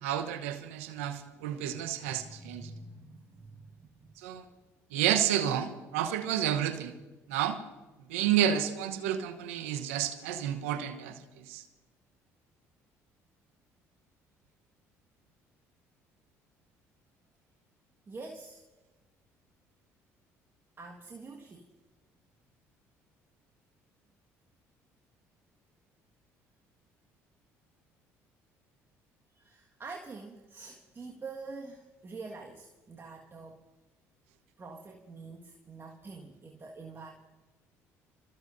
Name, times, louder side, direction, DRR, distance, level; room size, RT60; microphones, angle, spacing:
voice 1, 0.0-2.7 4.2-4.4 4.9-6.9 7.3-7.6 8.1-11.6, right 10 dB, 85° right, 9 dB, 1.1 m, -30 dB
voice 2, 2.0-4.1 18.1-18.6 20.8-21.6 29.3-33.6 34.6-37.1, right 3 dB, 35° right, 1 dB, 1.8 m, -46 dB
27.5 x 15.0 x 2.7 m, 1.2 s
hypercardioid pair, 60°, 7 cm